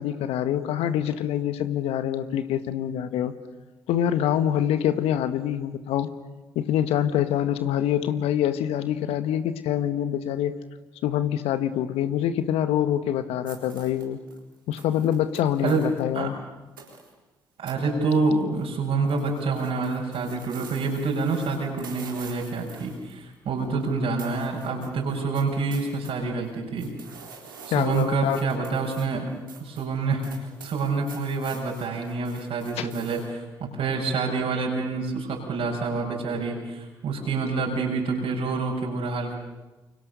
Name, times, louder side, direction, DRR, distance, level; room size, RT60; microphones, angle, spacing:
voice 1, 0.0-3.3 3.9-6.1 6.5-10.5 11.0-14.2 14.7-16.4 27.7-28.4 32.8-32.9, left 10 dB, 65° left, 11 dB, 1.7 m, -25 dB
sound 1, 13.4-16.0 16.8-17.1 17.7-17.8 18.0-18.6 18.9-23.9 24.2-26.1 26.4-33.3, right 6 dB, 85° right, 4.1 m, -47 dB
voice 2, 17.6-26.9 27.7-29.3 29.6-39.4, right 4 dB, 60° right, -2 dB, 6.7 m, -27 dB
29.0 x 29.0 x 6.9 m, 1.1 s
figure-of-eight pair, 45°, 11 cm